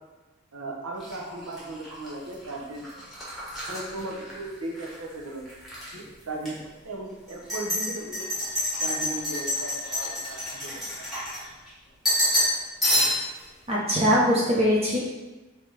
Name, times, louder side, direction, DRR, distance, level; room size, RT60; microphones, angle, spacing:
voice 1, 0.5-2.9 3.7-5.5 5.9-6.6 6.8-8.3 8.8-10.8, right 2 dB, 90° right, 0 dB, 0.9 m, -36 dB
sound 1, 1.0-5.0 5.3-5.9 6.4-6.5 7.3-11.7 12.0-12.6 12.8-13.4, left 1 dB, ahead, 1.3 m, -28 dB
voice 2, 13.7-15.0, equal, 30° right, -6 dB, 0.8 m, -21 dB
5.3 x 3.0 x 3.3 m, 1.1 s
head